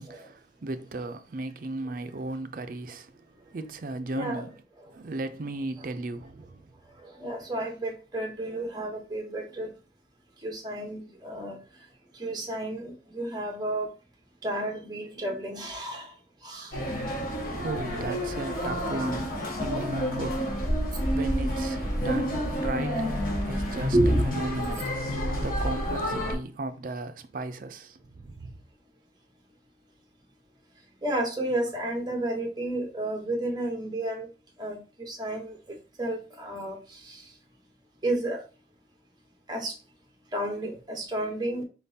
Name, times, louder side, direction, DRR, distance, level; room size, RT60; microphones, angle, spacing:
voice 1, 0.0-4.5 4.9-6.7 17.5-28.6, right 2 dB, 50° right, 0.4 m, -36 dB
voice 2, 4.1-4.5 7.0-9.7 10.4-11.6 12.1-13.9 14.4-16.1 16.4-16.8 23.9-24.2 31.0-34.3 34.6-37.3 38.0-38.4 39.5-39.7 40.3-41.6, right 1 dB, 20° right, 0.9 m, -31 dB
sound 1, 16.7-26.3, equal, 50° left, 1.5 m, -29 dB
4.4 x 3.7 x 2.7 m
head